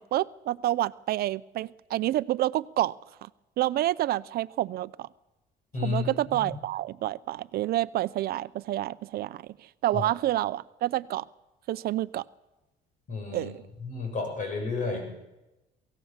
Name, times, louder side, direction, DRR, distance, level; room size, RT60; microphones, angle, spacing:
voice 1, 0.0-2.9 3.2-3.3 3.6-5.1 5.8-11.2 11.7-12.2 13.3-13.6, right 14 dB, 65° right, 16 dB, 0.6 m, -28 dB
voice 2, 5.7-6.5 9.9-10.0 13.1-13.5 13.8-15.2, left 4 dB, 50° left, 3 dB, 7.5 m, -32 dB
23.5 x 16.0 x 7.4 m, 1.0 s
cardioid pair, 110°, 17 cm